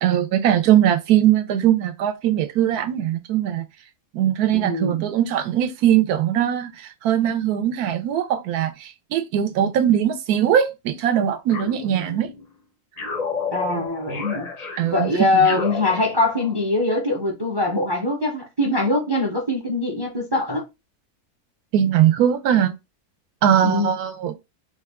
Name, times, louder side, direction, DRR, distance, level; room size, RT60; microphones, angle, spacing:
voice 1, 0.0-3.6 4.1-12.3 13.8-13.9 14.8-15.4 21.7-22.7 23.4-24.3, right 10 dB, 80° right, 1.1 m, -20 dB
voice 2, 4.5-5.1 13.5-14.5 14.9-20.7 23.6-23.9, left 2 dB, 30° right, 0.5 m, -22 dB
sound 1, 11.5-12.5 13.0-16.6, left 5 dB, 55° left, 0.4 m, -32 dB
3.5 x 2.2 x 3.4 m
omnidirectional pair, 1.6 m